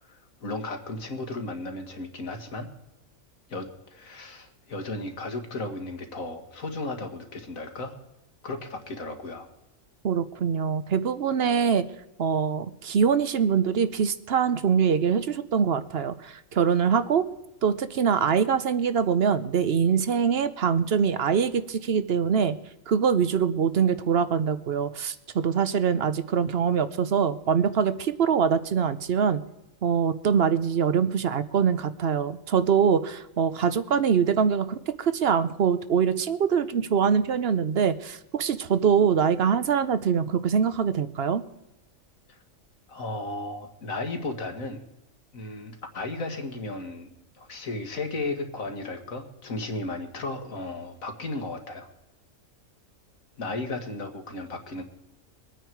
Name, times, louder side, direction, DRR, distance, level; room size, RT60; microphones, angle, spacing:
voice 1, 0.0-2.7 3.5-8.0 8.4-9.5 42.3-42.4 42.9-44.8 45.3-47.1 47.4-51.9 53.4-54.8, left 2 dB, 85° left, 5 dB, 2.2 m, -35 dB
voice 2, 10.0-11.8 12.2-17.3 17.6-22.6 22.9-29.4 29.8-41.4, right 7 dB, 55° right, 13 dB, 0.9 m, -24 dB
23.0 x 9.2 x 4.6 m, 0.93 s
omnidirectional pair, 1.4 m